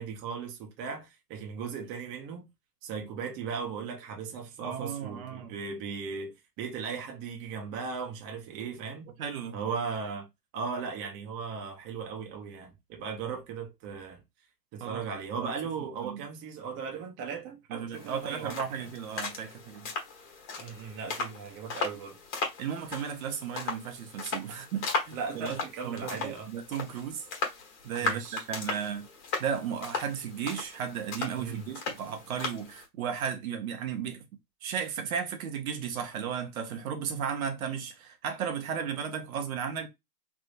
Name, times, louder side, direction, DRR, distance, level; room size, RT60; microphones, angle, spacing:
voice 1, 0.0-2.5 2.8-9.1 9.5-10.3 10.5-14.2 14.7-18.9 20.6-22.2 24.5-24.6 25.1-26.5 28.0-28.4 31.3-31.7, right 5 dB, 25° right, 0.8 m, -37 dB
voice 2, 4.6-5.6 9.2-9.6 14.8-15.0 15.4-15.5 16.0-16.2 17.7-19.9 22.6-27.3 27.8-29.1 29.4-34.2 34.6-39.9, right 7 dB, 60° right, 0.9 m, -35 dB
sound 1, 17.9-32.8, left 4 dB, 45° left, 1.5 m, -37 dB
3.4 x 2.7 x 2.5 m
hypercardioid pair, 135°, 49 cm